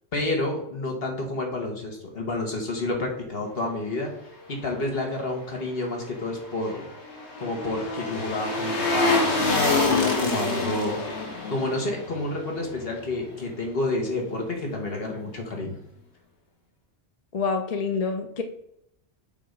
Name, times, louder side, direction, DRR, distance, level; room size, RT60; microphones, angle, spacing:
voice 1, 0.1-4.1 4.5-6.8 7.4-11.0 11.5-15.8, left 2 dB, 60° left, 1 dB, 1.7 m, -29 dB
sound 1, 6.2-13.4 13.7-13.8, left 3 dB, 75° left, 1.7 m, -27 dB
voice 2, 17.3-18.4, left 4 dB, 40° left, 5 dB, 0.6 m, -27 dB
7.2 x 2.9 x 5.1 m, 0.75 s
omnidirectional pair, 1.2 m